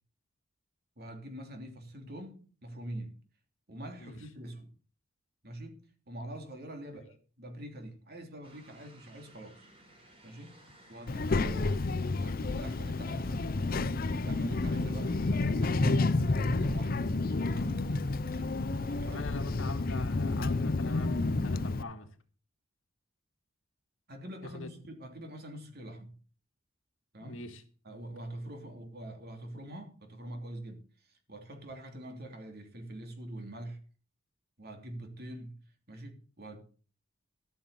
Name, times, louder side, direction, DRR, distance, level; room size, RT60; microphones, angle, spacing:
voice 1, 1.0-3.2 3.7-4.7 5.4-9.7 10.2-10.6 10.9-11.8 12.2-17.1 17.4-17.9 18.2-19.5 24.1-26.2 27.1-27.4 27.8-33.8 34.6-35.5 35.9-36.6, right 1 dB, 50° right, 3.0 m, -44 dB
sound 1, 8.4-20.4, right 1 dB, 30° right, 4.3 m, -61 dB
Child speech kid speaking, 11.1-21.8, left 3 dB, 45° left, 0.6 m, -30 dB
voice 2, 19.1-22.1 24.5-24.7 27.2-27.6, left 2 dB, 80° left, 1.8 m, -41 dB
14.0 x 6.9 x 6.9 m
head